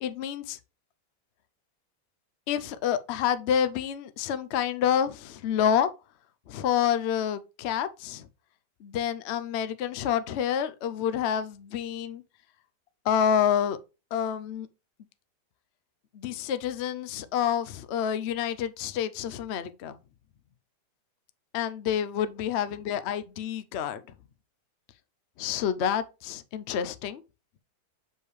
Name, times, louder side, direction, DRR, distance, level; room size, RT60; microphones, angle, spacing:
voice 1, 0.0-0.6 2.5-5.9 6.5-8.3 8.8-12.2 13.0-13.8 14.1-14.7 16.1-20.0 21.5-24.0 25.4-27.2, left 8 dB, 75° left, 0.6 m, -28 dB
6.6 x 5.3 x 3.1 m
omnidirectional pair, 1.9 m